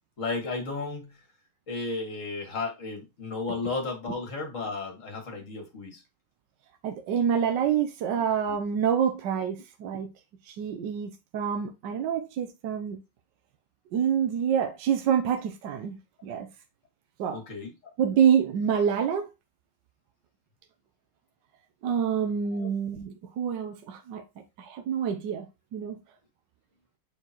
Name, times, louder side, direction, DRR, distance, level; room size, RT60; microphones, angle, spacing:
voice 1, 0.2-1.2 1.7-6.0 17.3-17.9 22.5-22.7, left 3 dB, 45° left, 2.0 m, -34 dB
voice 2, 6.8-10.1 10.5-13.0 13.9-16.0 16.2-16.5 17.2-17.4 18.0-19.3 21.8-24.2 24.6-25.5 25.7-26.0, right 8 dB, 75° right, 1.4 m, -27 dB
6.8 x 4.9 x 2.9 m
omnidirectional pair, 2.0 m